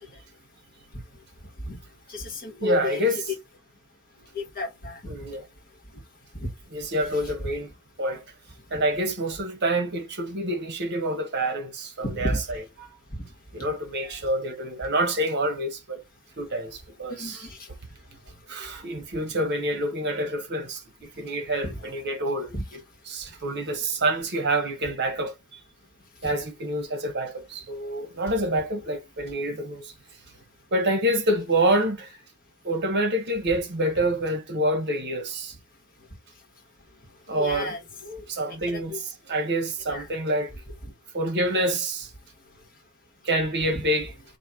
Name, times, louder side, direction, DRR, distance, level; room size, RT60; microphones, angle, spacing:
voice 1, 2.1-3.3 4.3-5.0 6.4-6.5 7.1-7.3 12.0-12.4 13.1-13.2 14.0-14.2 17.2-17.6 21.6-21.9 22.5-22.6 26.2-26.3 37.3-37.8 38.7-39.0 39.9-40.1 43.6-43.9, left 2 dB, 45° left, 1.4 m, -32 dB
voice 2, 2.6-3.2 5.1-5.5 6.7-7.7 8.0-8.2 8.7-12.3 13.5-16.0 16.4-17.5 18.5-22.5 23.1-25.3 26.2-29.9 30.7-32.2 32.6-35.5 37.3-37.7 38.1-40.5 41.1-42.1 43.2-44.1, right 1 dB, 50° right, 1.0 m, -27 dB
4.3 x 2.6 x 3.6 m
head